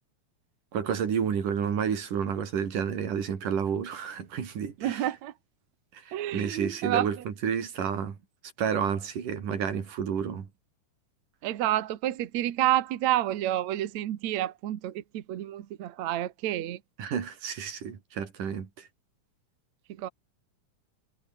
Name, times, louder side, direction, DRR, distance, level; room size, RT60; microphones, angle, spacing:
voice 1, 0.7-5.1 5.9-8.2 8.6-10.5 17.0-18.9, right 7 dB, 90° right, 4.6 m, -30 dB
voice 2, 4.8-5.3 6.1-7.2 11.4-16.8 19.9-20.1, right 13 dB, 65° right, 2.5 m, -29 dB
omnidirectional pair, 3.6 m